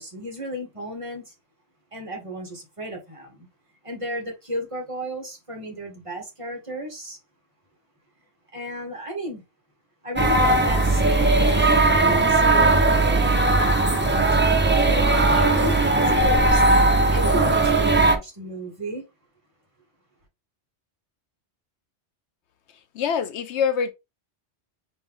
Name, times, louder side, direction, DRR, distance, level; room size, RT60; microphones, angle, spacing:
voice 1, 0.0-1.3 1.9-3.5 3.8-7.2 8.5-9.4 10.0-12.9 13.7-19.0, right 1 dB, 30° right, 1.5 m, -33 dB
sound 1, 10.2-18.2, right 2 dB, 15° right, 0.5 m, -18 dB
voice 2, 22.9-23.9, left 7 dB, 80° left, 1.0 m, -24 dB
4.0 x 3.6 x 3.5 m
omnidirectional pair, 1.1 m